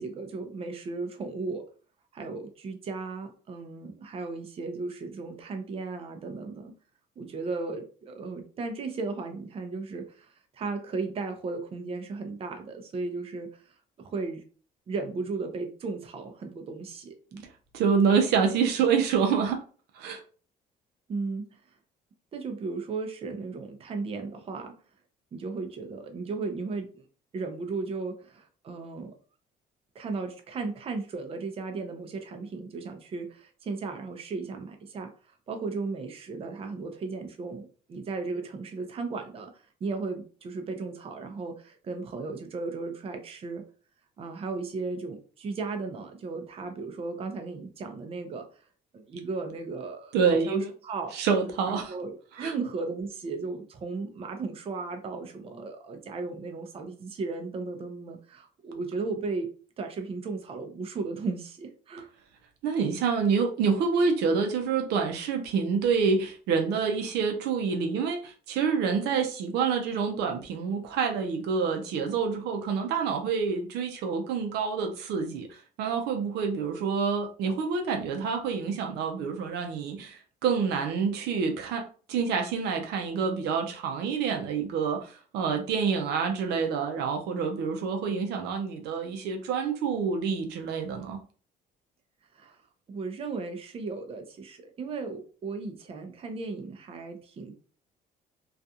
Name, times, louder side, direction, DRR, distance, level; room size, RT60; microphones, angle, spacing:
voice 1, 0.0-1.7 2.1-6.7 7.2-14.4 14.9-17.4 21.1-21.4 22.3-24.7 25.3-27.0 27.3-29.1 29.9-39.5 39.8-43.6 44.2-48.5 48.9-51.2 51.7-59.5 59.8-62.1 92.3-92.6 92.9-97.5, right 3 dB, 35° right, 0.5 m, -35 dB
voice 2, 17.7-19.6 19.9-20.2 50.1-50.7 51.1-51.9 52.4-52.5 62.6-91.2, right 5 dB, 80° right, 0.5 m, -27 dB
2.4 x 2.3 x 2.7 m
cardioid pair, 110°, 17 cm